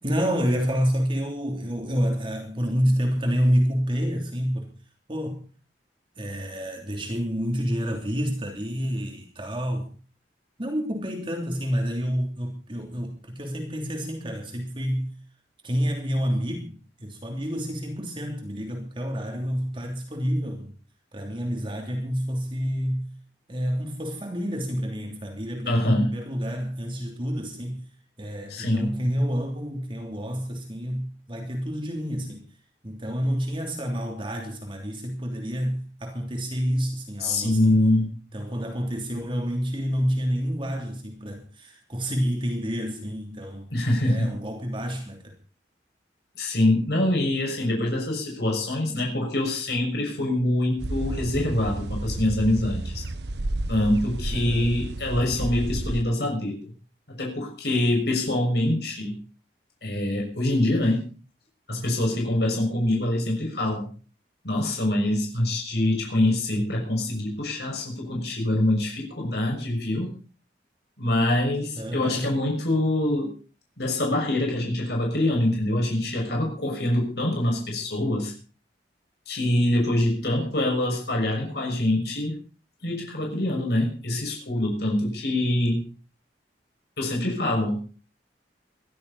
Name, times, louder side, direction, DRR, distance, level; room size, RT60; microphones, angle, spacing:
voice 1, 0.0-4.7 5.1-5.4 6.2-9.9 10.6-15.1 15.6-20.7 21.1-23.1 23.5-27.8 28.2-32.4 32.8-37.8 38.3-43.7 44.0-45.3 54.3-54.7 71.8-72.4, equal, 30° right, 3.1 m, -28 dB
voice 2, 25.7-26.1 28.5-29.0 37.2-38.2 43.7-44.4 46.4-53.0 53.7-56.6 57.1-59.2 59.8-61.1 61.7-63.9 64.4-70.1 71.0-73.4 73.8-78.3 79.3-82.4 82.8-85.9 87.0-87.8, left 1 dB, 65° left, 6.2 m, -24 dB
sound 1, 50.8-56.0, right 1 dB, 70° right, 1.1 m, -31 dB
21.0 x 15.0 x 4.2 m
head